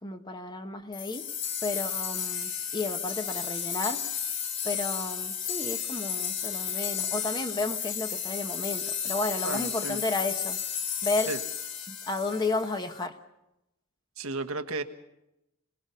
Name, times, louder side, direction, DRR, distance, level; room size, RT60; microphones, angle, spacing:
voice 1, 0.0-1.3 1.6-4.0 4.6-10.6 11.0-11.3 11.9-13.2, left 2 dB, 20° left, 7 dB, 1.1 m, -32 dB
sound 1, 0.9-12.9, left 8 dB, 55° left, 1.7 m, -33 dB
voice 2, 9.4-10.0 11.3-11.4 14.2-14.8, right 3 dB, 90° right, 7 dB, 1.3 m, -33 dB
26.5 x 19.5 x 5.6 m, 0.89 s
head